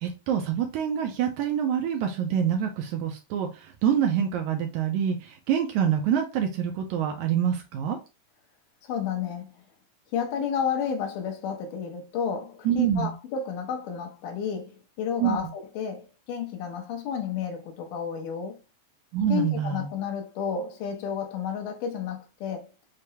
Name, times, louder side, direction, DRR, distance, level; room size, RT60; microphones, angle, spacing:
voice 1, 0.0-8.0 12.6-13.1 15.2-15.4 19.1-19.9, right 8 dB, 85° right, 1.7 m, -26 dB
voice 2, 8.8-9.6 10.1-18.6 19.3-22.7, left 7 dB, 75° left, 2.3 m, -31 dB
6.5 x 2.2 x 2.8 m
omnidirectional pair, 4.0 m